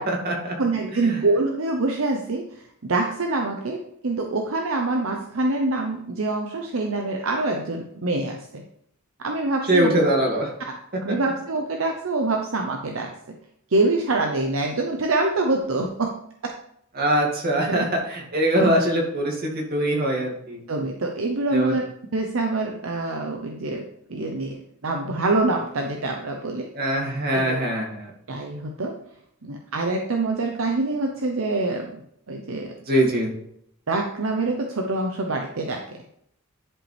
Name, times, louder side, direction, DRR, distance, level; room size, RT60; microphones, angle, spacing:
voice 1, 0.0-0.5 0.9-1.2 9.7-10.5 17.0-20.6 21.5-21.8 26.7-28.1 32.9-33.3, right 1 dB, 45° right, -1 dB, 2.3 m, -22 dB
voice 2, 0.6-8.6 9.2-10.0 10.7-10.8 11.0-13.4 13.7-16.1 17.7-17.9 18.5-18.7 20.7-21.8 22.1-24.6 24.8-26.7 27.3-27.6 28.3-29.0 29.4-32.0 32.3-32.7 33.9-35.8, right 2 dB, 70° right, 2 dB, 0.8 m, -25 dB
11.0 x 5.1 x 3.4 m, 0.71 s
head